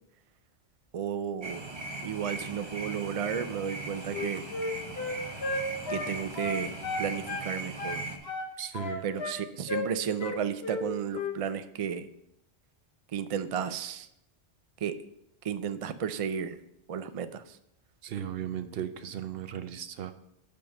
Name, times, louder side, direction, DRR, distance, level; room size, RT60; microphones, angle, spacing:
voice 1, 0.9-1.6 2.0-4.4 5.9-8.1 9.0-12.1 13.1-14.1 14.8-15.0 15.4-16.6 16.9-17.6, right 8 dB, 55° right, 10 dB, 0.4 m, -33 dB
sound 1, 1.4-8.2, right 2 dB, 25° right, 0.9 m, -39 dB
Wind instrument woodwind instrument, 4.0-7.5 7.8-9.4 9.7-9.9 10.2-10.8 11.1-11.4, left 3 dB, 70° left, 1.2 m, -34 dB
voice 2, 8.6-9.0 18.0-20.1, right 9 dB, 70° right, 9 dB, 0.8 m, -36 dB
5.7 x 5.3 x 6.4 m, 0.78 s
omnidirectional pair, 1.1 m